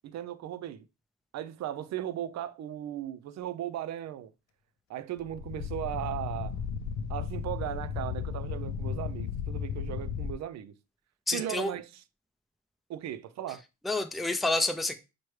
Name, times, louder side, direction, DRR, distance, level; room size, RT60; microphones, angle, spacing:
voice 1, 0.0-0.9 1.3-4.3 4.9-6.5 7.1-10.8 11.3-12.0 12.9-13.6, right 11 dB, 65° right, 0.5 m, -37 dB
sound 1, 5.2-10.3, left 7 dB, 70° left, 0.5 m, -35 dB
voice 2, 11.3-11.7 13.8-15.0, left 2 dB, ahead, 0.4 m, -28 dB
6.0 x 2.2 x 3.1 m
cardioid pair, 90°, 30 cm